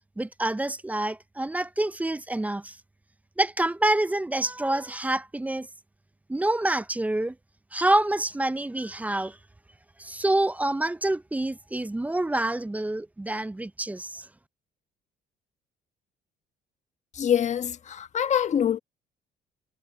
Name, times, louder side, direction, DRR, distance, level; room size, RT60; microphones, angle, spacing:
voice 1, 0.2-2.8 3.4-5.7 6.3-7.4 7.7-9.4 10.0-14.3, right 1 dB, 10° right, 0.6 m, -27 dB
voice 2, 17.1-18.8, left 9 dB, 45° left, 1.2 m, -25 dB
cardioid pair, 110°, 17 cm